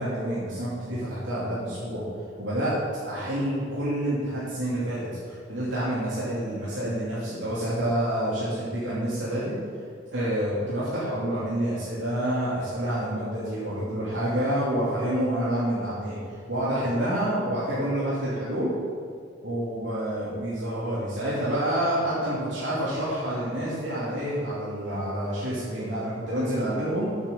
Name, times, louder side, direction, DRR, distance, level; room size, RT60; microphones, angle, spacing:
voice 1, 0.0-2.0 2.4-9.5 10.1-18.7 19.4-27.1, right 1 dB, 85° right, -10 dB, 2.8 m, -28 dB
8.4 x 6.6 x 6.8 m, 2.2 s
head